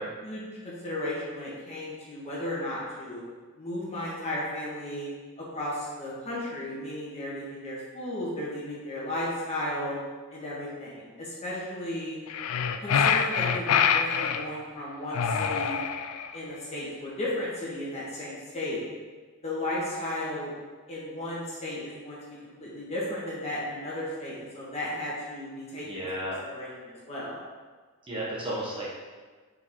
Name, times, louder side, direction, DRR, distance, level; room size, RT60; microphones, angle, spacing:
voice 1, 0.2-3.2 3.6-5.1 5.5-10.0 10.3-12.2 12.8-15.8 16.3-18.8 19.4-20.5 20.9-26.0 26.4-27.4, left 1 dB, 30° left, -7 dB, 1.7 m, -34 dB
sound 1, 12.3-14.5 15.1-16.4, left 7 dB, 80° left, 0.4 m, -25 dB
voice 2, 25.8-26.3 28.1-28.9, right 1 dB, 25° right, -6 dB, 1.2 m, -33 dB
6.2 x 5.0 x 3.7 m, 1.4 s
head